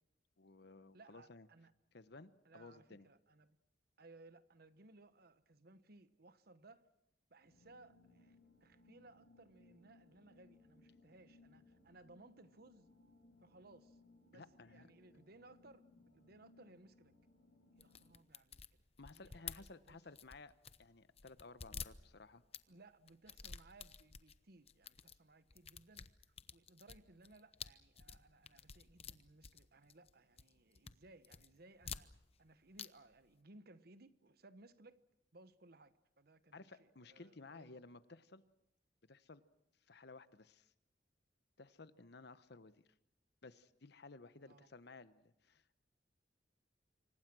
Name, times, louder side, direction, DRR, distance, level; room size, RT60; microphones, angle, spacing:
voice 1, 0.4-1.5 1.9-3.1 14.3-14.9 15.1-15.2 19.0-20.5 20.8-22.4 36.5-38.4 39.0-39.4 39.8-40.7 41.6-42.8 43.4-45.8, left 3 dB, 65° left, 13 dB, 1.0 m, -57 dB
voice 2, 0.9-1.7 2.4-3.6 4.0-6.9 7.3-12.9 13.4-14.0 14.3-17.1 17.8-18.8 19.1-20.0 22.7-26.1 26.5-32.1 32.4-35.0 35.3-37.8 44.4-44.7, right 2 dB, 60° right, 12 dB, 1.2 m, -63 dB
sound 1, 7.4-18.2, left 2 dB, 85° left, 6.4 m, -67 dB
sound 2, 17.8-20.9 21.2-22.6 23.1-24.4 24.7-25.2 25.5-30.1 30.4-31.0 31.2-32.5 32.7-32.9 33.1-33.2, left 7 dB, 35° left, 0.8 m, -51 dB
27.0 x 24.5 x 6.2 m, 0.87 s
head